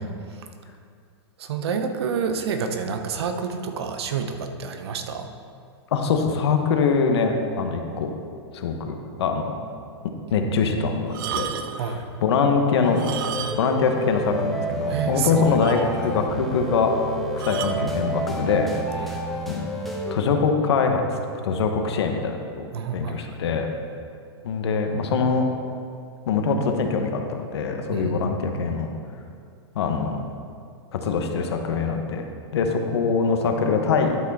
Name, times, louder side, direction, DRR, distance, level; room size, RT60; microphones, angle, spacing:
voice 1, 1.4-5.3 11.8-12.0 14.9-15.6 18.9-19.2 22.7-23.4 27.9-28.1, right 6 dB, 70° right, 7 dB, 0.8 m, -28 dB
voice 2, 5.9-8.1 8.5-9.5 10.3-11.5 11.9-13.0 13.5-16.9 17.4-18.7 19.5-19.7 20.1-21.0 21.4-22.7 22.9-23.7 24.4-25.5 26.3-28.9 29.7-30.2 30.9-32.2 32.5-34.2, left 5 dB, 70° left, 4 dB, 1.1 m, -23 dB
sound 1, 11.1-11.9 12.9-13.9 14.1-14.2 14.8-14.9 15.1-15.2 15.6-16.2 17.4-17.9 18.7-18.9, right 8 dB, 50° right, 0.5 m, -32 dB
sound 2, 12.8-20.2, right 1 dB, ahead, 0.7 m, -30 dB
11.0 x 6.2 x 4.1 m, 2.3 s
supercardioid pair, 160°, 14 cm